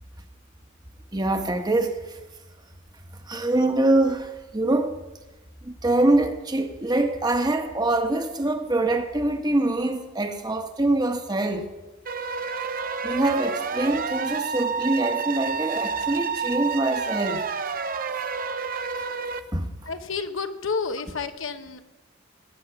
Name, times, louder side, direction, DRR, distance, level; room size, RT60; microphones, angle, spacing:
voice 1, 1.1-2.2 3.2-5.0 5.6-11.7 13.0-17.4 19.5-19.7, right 2 dB, 20° right, 1.2 m, -24 dB
sound 1, 12.1-19.4, right 5 dB, 45° right, 0.8 m, -29 dB
voice 2, 19.8-21.8, left 5 dB, 75° left, 1.1 m, -30 dB
19.5 x 9.4 x 5.9 m
head